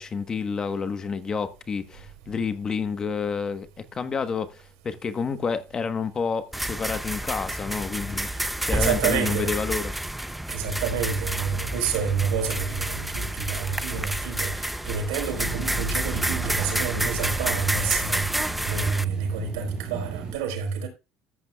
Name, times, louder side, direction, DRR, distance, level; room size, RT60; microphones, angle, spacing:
voice 1, 0.0-10.0, left 5 dB, 30° left, 1.2 m, -29 dB
sound 1, 6.5-19.0, right 1 dB, 5° right, 0.6 m, -29 dB
voice 2, 8.7-9.5 10.5-20.9, right 6 dB, 90° right, 4.1 m, -29 dB
sound 2, 15.3-20.3, right 6 dB, 30° right, 5.6 m, -34 dB
14.0 x 8.9 x 2.3 m
supercardioid pair, 115°, 2 cm